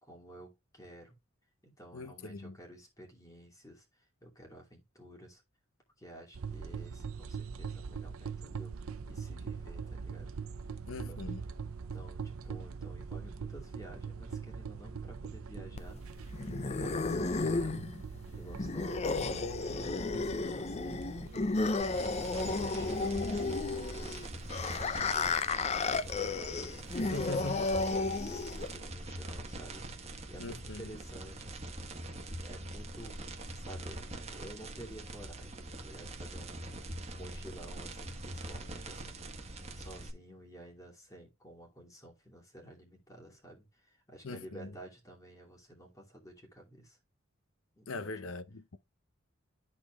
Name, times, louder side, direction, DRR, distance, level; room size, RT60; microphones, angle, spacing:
voice 1, 0.0-1.2 1.6-5.4 6.0-10.3 10.9-11.2 11.8-17.9 18.3-21.4 21.7-31.9 32.4-47.0 47.7-48.1, right 1 dB, 15° left, 2.6 m, -52 dB
voice 2, 1.9-2.5 10.9-11.4 27.0-27.6 30.4-30.9 44.2-44.7 47.9-48.8, left 3 dB, 70° left, 0.7 m, -41 dB
sound 1, 6.3-24.9, right 5 dB, 90° right, 0.6 m, -43 dB
sound 2, 15.8-28.8, left 3 dB, 30° left, 0.5 m, -33 dB
sound 3, 21.8-40.1, right 1 dB, 30° right, 1.3 m, -43 dB
13.0 x 4.3 x 2.3 m
head